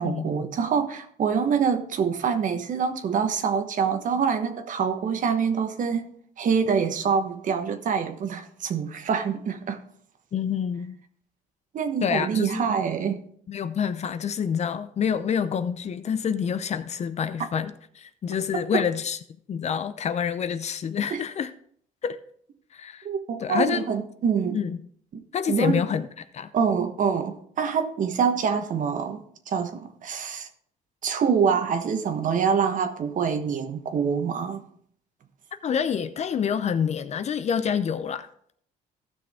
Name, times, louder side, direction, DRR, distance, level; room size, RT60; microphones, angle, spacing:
voice 1, 0.0-6.0 6.4-9.8 11.7-13.2 18.5-18.8 21.1-21.2 23.0-24.6 25.1-25.2 25.5-25.8 26.5-30.5 31.0-34.6, right 6 dB, 50° right, 1.2 m, -25 dB
voice 2, 10.3-11.0 12.0-12.6 13.5-19.2 19.5-21.5 22.0-22.2 22.7-23.1 23.4-23.9 24.5-24.8 25.3-26.1 26.3-26.5 35.6-38.3, left 7 dB, 40° left, 0.6 m, -27 dB
14.5 x 6.2 x 3.5 m
cardioid pair, 110°, 17 cm